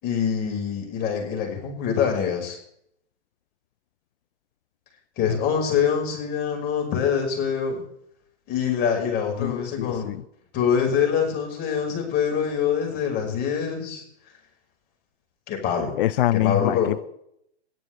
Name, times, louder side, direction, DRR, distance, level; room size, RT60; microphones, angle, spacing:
voice 1, 0.0-2.6 5.2-7.8 8.5-10.1 10.5-14.0 15.5-15.9 16.3-16.9, left 7 dB, 30° left, 2 dB, 5.7 m, -24 dB
voice 2, 9.4-10.2 16.0-17.0, left 14 dB, 50° left, 19 dB, 0.4 m, -24 dB
21.0 x 13.5 x 3.5 m, 0.71 s
hypercardioid pair, 135°, 35 cm